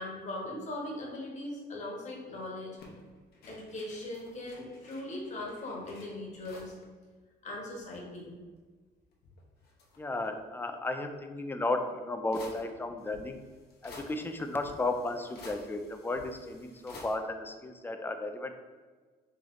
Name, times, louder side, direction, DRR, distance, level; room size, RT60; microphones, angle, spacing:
voice 1, 0.0-2.8 3.5-6.7 7.4-8.3, left 1 dB, 45° left, -2 dB, 1.2 m, -39 dB
sound 1, 2.8-6.9 7.2-7.3 7.5-8.5 9.1-10.4 11.5-11.6 12.3-17.2, left 3 dB, 70° left, 0.8 m, -53 dB
voice 2, 10.0-13.4 13.8-18.5, left 2 dB, 10° left, 6 dB, 0.3 m, -34 dB
3.2 x 3.0 x 3.8 m, 1.4 s
cardioid pair, 110°, 17 cm